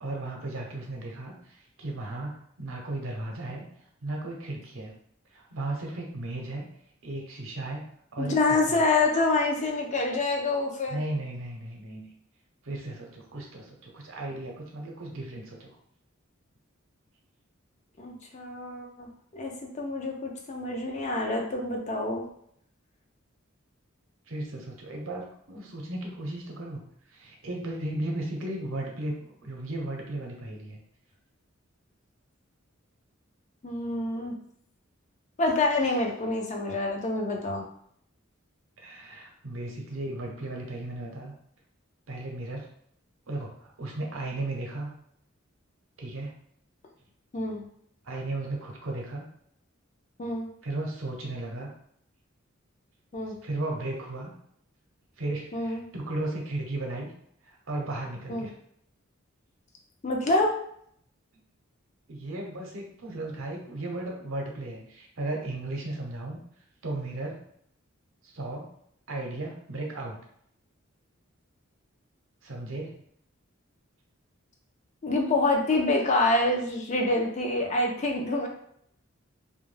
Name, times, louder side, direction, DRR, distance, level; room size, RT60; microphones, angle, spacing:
voice 1, 0.0-3.7 4.0-4.9 5.3-6.7 7.0-7.9 8.1-8.8 10.9-12.1 12.6-15.8 24.3-26.8 27.1-30.8 38.8-41.3 42.1-42.7 43.3-44.9 46.0-46.3 48.0-49.3 50.6-51.7 53.4-54.3 55.2-57.1 57.4-58.5 62.1-66.4 66.8-67.4 68.2-68.7 69.1-70.2 72.4-72.9, right 2 dB, 75° right, 0 dB, 0.7 m, -35 dB
voice 2, 8.2-11.0 18.0-22.3 33.6-34.4 35.4-37.7 47.3-47.6 50.2-50.5 53.1-53.4 55.5-55.9 58.3-58.5 60.0-60.6 75.0-78.5, left 2 dB, 35° left, 1 dB, 0.4 m, -27 dB
2.2 x 2.1 x 3.2 m, 0.68 s
head